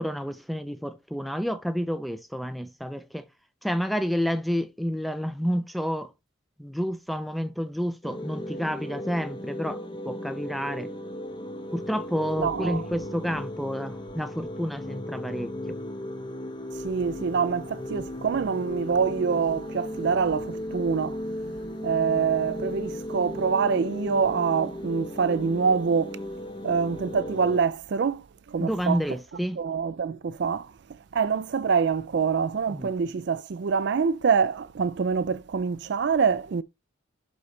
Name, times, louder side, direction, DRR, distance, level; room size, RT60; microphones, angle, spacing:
voice 1, 0.0-3.3 3.6-6.1 6.6-10.9 11.7-15.5 28.6-29.6 32.7-32.9, equal, ahead, 0.5 m, -29 dB
sound 1, 8.0-27.6, left 1 dB, 20° left, 0.8 m, -36 dB
voice 2, 12.4-12.8 16.7-21.2 21.8-26.2 26.6-28.2 28.5-29.0 29.6-30.7 31.1-36.6, right 5 dB, 55° right, 0.4 m, -25 dB
11.5 x 4.0 x 3.2 m
head